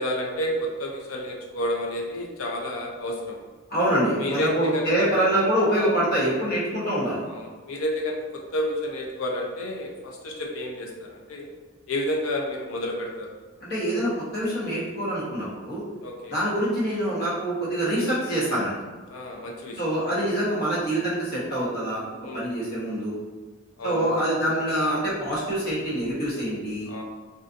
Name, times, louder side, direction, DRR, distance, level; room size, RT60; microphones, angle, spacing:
voice 1, 0.0-3.4 4.2-5.2 7.3-8.2 8.5-11.5 11.9-13.3 16.0-16.4 19.1-19.8 22.2-22.5 23.8-24.0 26.9-27.0, left 1 dB, 85° left, 0 dB, 0.5 m, -30 dB
voice 2, 3.7-7.2 13.6-15.8 16.3-18.8 19.8-22.0 22.3-23.2 23.8-26.9, right 1 dB, 50° left, -7 dB, 0.9 m, -25 dB
2.4 x 2.4 x 2.5 m, 1.3 s
head